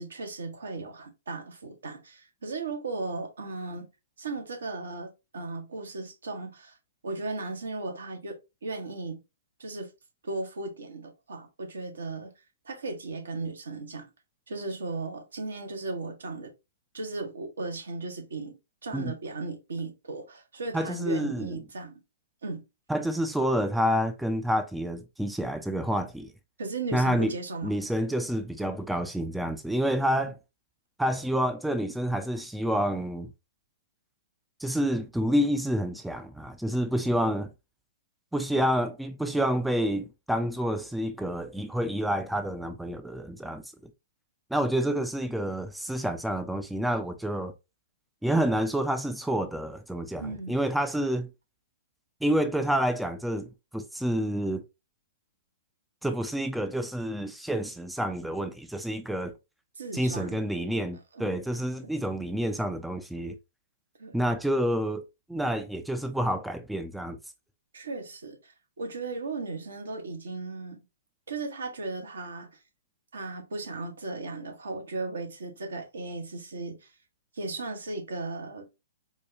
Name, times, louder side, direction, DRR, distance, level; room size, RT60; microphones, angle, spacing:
voice 1, 0.0-3.9 4.2-6.8 7.0-8.4 8.6-9.2 9.6-9.9 10.2-12.3 12.6-14.0 14.5-16.5 16.9-18.6 18.8-22.0 22.4-22.6 26.6-27.8 37.0-37.2 50.2-50.6 59.8-60.4 61.1-61.4 64.0-64.2 67.7-70.8 71.3-72.6 73.1-76.9 77.3-78.7, right 3 dB, 75° right, 1.0 m, -36 dB
voice 2, 20.7-21.5 22.9-26.3 26.9-27.3 27.6-30.4 31.0-33.3 34.6-37.5 38.3-43.6 44.5-47.5 48.2-51.3 52.2-54.6 56.0-59.3 59.9-63.4 64.1-65.0 65.3-67.2, equal, ahead, 0.3 m, -28 dB
4.4 x 2.2 x 2.7 m
figure-of-eight pair, 120°, 0 cm